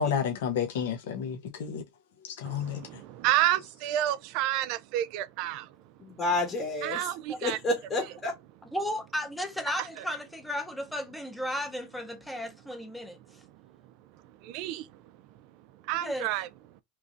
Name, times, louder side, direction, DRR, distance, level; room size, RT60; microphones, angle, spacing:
voice 1, 0.0-1.8 2.4-2.8, left 7 dB, 80° left, 0.6 m, -30 dB
voice 2, 2.4-5.7 6.8-7.6 10.0-10.1 14.4-14.9 15.8-16.5, right 14 dB, 50° right, 0.3 m, -30 dB
voice 3, 6.0-7.1 7.4-8.3, left 2 dB, 20° left, 0.9 m, -29 dB
voice 4, 8.7-13.2 16.0-16.3, equal, 5° left, 0.6 m, -34 dB
3.0 x 2.5 x 2.5 m
supercardioid pair, 150°, 0 cm